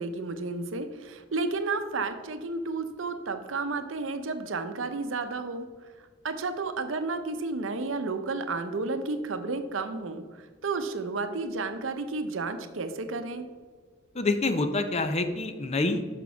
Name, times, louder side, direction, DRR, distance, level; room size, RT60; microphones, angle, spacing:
voice 1, 0.0-5.7 6.2-13.5, right 3 dB, 80° right, 8 dB, 0.7 m, -32 dB
voice 2, 14.2-16.0, left 2 dB, 35° left, 8 dB, 0.6 m, -27 dB
6.3 x 6.0 x 5.7 m, 1.5 s
head